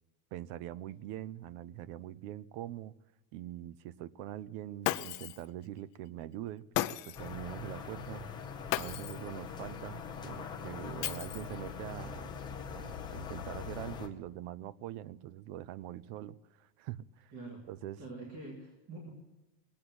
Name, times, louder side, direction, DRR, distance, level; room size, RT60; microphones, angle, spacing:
voice 1, 0.3-2.9 3.3-8.3 8.8-17.3 17.7-18.0, right 13 dB, 50° right, 20 dB, 0.5 m, -43 dB
Shatter, 4.8-5.5 6.7-7.3 8.7-9.3 11.0-11.7, left 17 dB, 45° left, 0.5 m, -35 dB
sound 1, 7.1-14.1, left 6 dB, 10° left, 0.9 m, -42 dB
voice 2, 17.3-17.6 18.0-19.1, right 2 dB, 30° right, -1 dB, 2.2 m, -45 dB
20.5 x 8.6 x 7.8 m, 1.1 s
cardioid pair, 175°, 46 cm